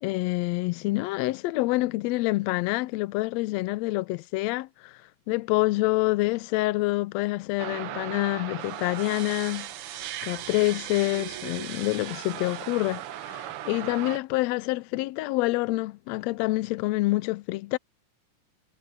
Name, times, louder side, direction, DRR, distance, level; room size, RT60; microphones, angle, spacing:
voice 1, 0.0-5.0 5.3-9.7 10.2-17.8, left 20 dB, 80° left, 1.6 m, -27 dB
sound 1, 7.6-14.2, right 12 dB, 75° right, 1.3 m, -37 dB
omnidirectional pair, 3.5 m